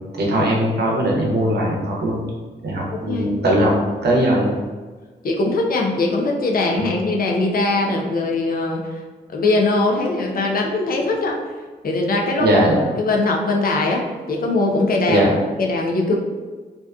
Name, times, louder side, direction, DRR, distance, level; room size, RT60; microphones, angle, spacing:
voice 1, 0.2-2.2 2.6-3.7 4.0-4.5 12.4-12.8 15.1-15.3, right 1 dB, 60° right, -2 dB, 0.7 m, -19 dB
voice 2, 2.9-3.4 5.2-9.0 9.3-11.4 11.8-12.5 13.0-15.3 15.6-16.2, left 2 dB, 50° left, 0 dB, 0.5 m, -21 dB
2.5 x 2.2 x 2.3 m, 1.4 s
supercardioid pair, 45°, 19 cm